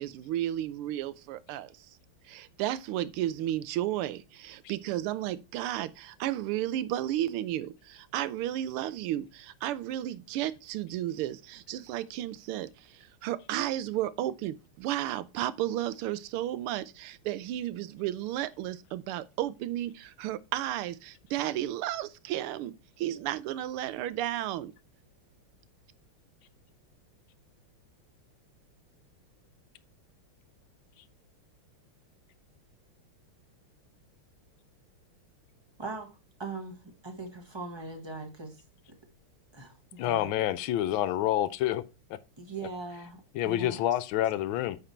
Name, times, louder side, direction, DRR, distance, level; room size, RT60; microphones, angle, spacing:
voice 1, 0.0-2.0 2.3-24.7, right 13 dB, 85° right, 1.5 m, -33 dB
voice 2, 35.8-36.1 36.4-36.8 37.0-38.6 39.5-40.3 42.4-43.8, right 3 dB, 15° right, 1.2 m, -40 dB
voice 3, 40.0-41.8 42.1-42.2 43.3-44.8, left 13 dB, 75° left, 1.3 m, -28 dB
8.9 x 4.6 x 4.3 m
omnidirectional pair, 2.4 m